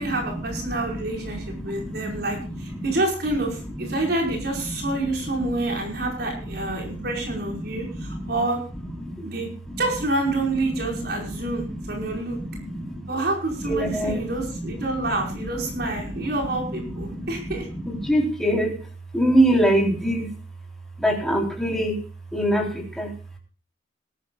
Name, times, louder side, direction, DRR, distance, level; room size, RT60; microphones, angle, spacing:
voice 1, 0.0-8.6 9.2-9.5 9.8-12.4 13.1-17.7, right 2 dB, 65° right, 1 dB, 5.0 m, -28 dB
voice 2, 0.9-2.2 2.5-2.9 3.8-3.9 6.9-7.0 7.7-8.3 9.0-9.1 11.2-11.7 11.9-13.0 13.6-14.7 15.2-15.3 15.8-16.2 17.1-17.3 17.7-18.8 19.1-20.3 21.0-22.0 22.3-23.1, right 1 dB, 5° left, 0 dB, 3.6 m, -25 dB
20.0 x 13.0 x 2.4 m, 0.38 s
head